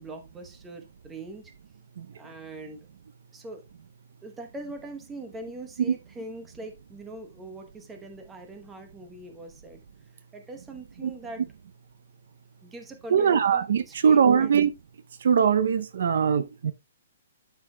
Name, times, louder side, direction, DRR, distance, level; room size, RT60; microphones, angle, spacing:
voice 1, 0.0-1.5 2.2-2.9 3.3-3.6 4.2-9.8 10.3-11.4 12.6-14.5, right 2 dB, 5° right, 0.9 m, -42 dB
voice 2, 13.1-14.7 15.2-16.7, right 7 dB, 60° right, 0.5 m, -21 dB
12.0 x 5.5 x 2.2 m
hypercardioid pair, 180°, 0 cm